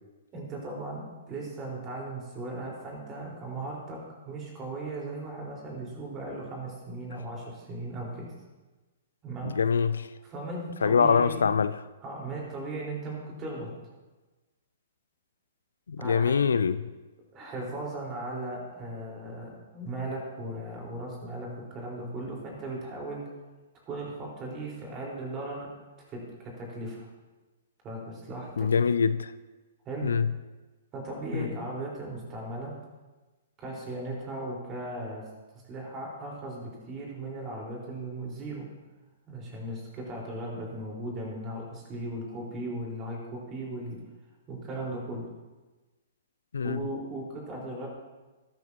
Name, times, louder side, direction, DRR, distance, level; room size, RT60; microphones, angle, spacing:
voice 1, 0.3-8.3 9.2-9.6 10.3-11.4 12.0-13.7 16.0-16.3 17.3-23.2 23.9-25.7 26.1-27.1 27.8-28.7 29.8-30.1 30.9-32.7 33.6-35.2 35.7-38.7 39.3-44.0 44.5-45.3 46.6-47.9, right 2 dB, 25° right, -2 dB, 4.4 m, -37 dB
voice 2, 9.4-10.1 10.8-11.7 15.9-16.9 28.6-29.3 30.0-30.3 31.3-31.5 46.5-46.8, left 6 dB, 75° left, 14 dB, 0.4 m, -24 dB
13.0 x 12.5 x 2.9 m, 1.2 s
figure-of-eight pair, 120°, 0 cm